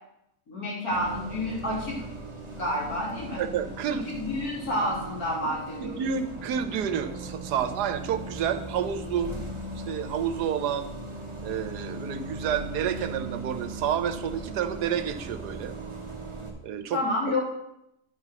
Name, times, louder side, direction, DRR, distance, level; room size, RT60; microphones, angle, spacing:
voice 1, 0.5-2.1 2.5-3.4 4.1-6.1 16.9-17.4, left 1 dB, 65° left, -5 dB, 3.7 m, -29 dB
Bus, 0.9-16.5, right 2 dB, 20° right, 1.1 m, -38 dB
voice 2, 3.4-4.1 5.4-5.5 5.8-9.4 9.8-10.9 11.4-15.8 16.6-17.3, right 8 dB, 85° right, 11 dB, 1.3 m, -29 dB
9.5 x 5.7 x 6.0 m, 0.81 s
omnidirectional pair, 1.7 m